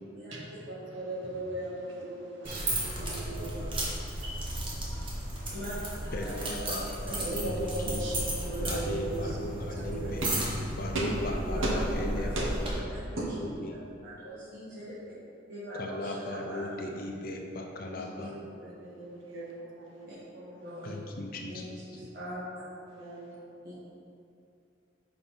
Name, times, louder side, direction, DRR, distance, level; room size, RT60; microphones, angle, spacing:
voice 1, 0.7-3.5 4.2-5.5 7.2-9.4 9.8-10.3 10.9-11.1 11.6-11.7 12.3-12.4 13.1-13.3 18.1-18.2 18.5-20.1 20.3-20.6 22.9-23.4, right 2 dB, 90° right, -3 dB, 1.2 m, -38 dB
sound 1, 2.4-12.7, right 1 dB, 25° right, 0.9 m, -34 dB
voice 2, 3.0-3.7 5.5-7.4 9.6-10.1 11.4-11.7 12.1-12.3 12.9-13.2 14.0-14.9 15.5-16.7 18.2-18.3 20.1-20.2 20.6-20.9 21.5-22.4 23.6-23.7, equal, 50° right, -12 dB, 1.4 m, -42 dB
voice 3, 6.1-8.0 8.6-10.2 10.8-12.5 13.2-13.7 15.8-18.3 20.8-21.6, left 1 dB, 45° left, 1 dB, 0.6 m, -37 dB
5.3 x 5.2 x 4.4 m, 2.6 s
head